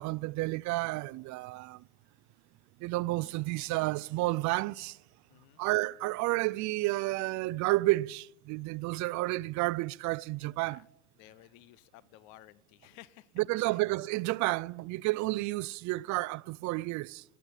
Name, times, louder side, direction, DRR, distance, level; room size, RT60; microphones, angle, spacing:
voice 1, 0.0-1.8 2.8-5.0 5.6-10.8 13.4-17.2, right 20 dB, 50° right, 0.5 m, -31 dB
voice 2, 5.3-5.6 10.7-10.9 11.2-13.8, left 15 dB, 60° left, 0.7 m, -55 dB
18.5 x 7.8 x 7.2 m
hypercardioid pair, 80°, 39 cm